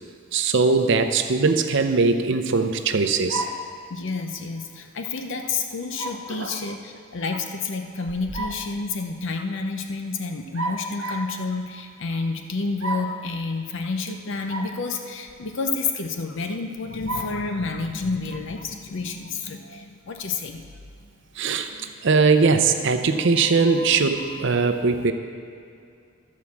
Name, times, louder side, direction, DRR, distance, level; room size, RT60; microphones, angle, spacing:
voice 1, 0.3-3.4 6.3-6.6 21.4-25.1, right 4 dB, 60° right, 8 dB, 0.6 m, -21 dB
sound 1, 3.3-3.7 6.0-6.3 8.1-8.7 10.5-11.4 12.8-13.2 14.5-14.8 15.3-15.4 17.1-17.4, right 1 dB, 85° right, 1.3 m, -31 dB
voice 2, 3.9-20.6, left 4 dB, 60° left, 5 dB, 0.7 m, -29 dB
12.5 x 4.7 x 7.2 m, 2.4 s
head